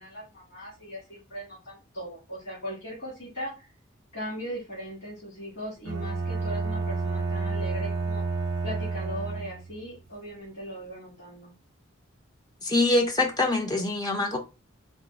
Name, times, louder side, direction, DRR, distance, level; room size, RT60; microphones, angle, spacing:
voice 1, 0.0-3.7 4.1-8.2 8.6-11.5, equal, 60° left, 1.8 m, -38 dB
Bowed string instrument, 5.8-9.8, right 4 dB, 60° right, 0.6 m, -30 dB
voice 2, 12.6-14.4, left 2 dB, 20° left, 0.4 m, -24 dB
4.0 x 2.2 x 2.3 m
head